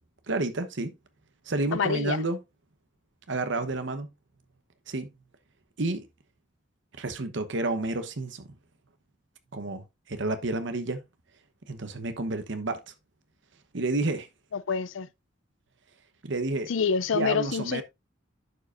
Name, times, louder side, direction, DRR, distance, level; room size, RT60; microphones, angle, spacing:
voice 1, 0.3-0.9 1.5-2.4 3.3-4.1 4.9-5.1 5.8-6.1 7.0-8.5 9.5-11.0 11.7-12.8 13.7-14.3 16.2-16.7 17.1-17.8, right 2 dB, 65° right, 1.0 m, -30 dB
voice 2, 1.7-2.2 14.5-15.1 16.7-17.8, left 6 dB, 80° left, 0.5 m, -27 dB
11.0 x 5.0 x 2.5 m
head